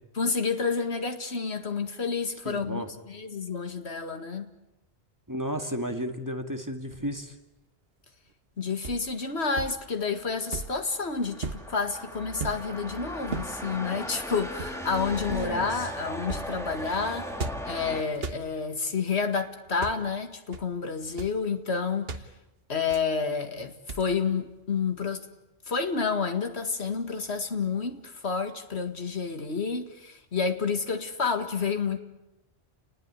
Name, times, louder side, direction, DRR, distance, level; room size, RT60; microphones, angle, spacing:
voice 1, 0.1-4.5 8.6-17.3 17.6-22.2 22.7-25.3 25.7-32.0, left 5 dB, 70° left, 2.2 m, -29 dB
voice 2, 2.5-2.9 5.3-7.3 15.3-15.7, equal, 15° right, 2.1 m, -33 dB
sound 1, 6.9-7.3 8.8-9.1 9.5-9.8 10.5-10.9 11.4-11.7 12.4-12.7 13.3-13.6 14.5-14.9 15.3-15.6 16.2-16.6 17.4-17.8 18.1-18.5 19.6-20.0 20.5-20.7 21.0-21.4 22.1-22.3 22.9-23.2 23.9-24.2, right 4 dB, 60° right, 1.5 m, -37 dB
sound 2, 10.1-18.0, equal, ahead, 2.7 m, -38 dB
29.5 x 20.0 x 9.8 m
omnidirectional pair, 1.1 m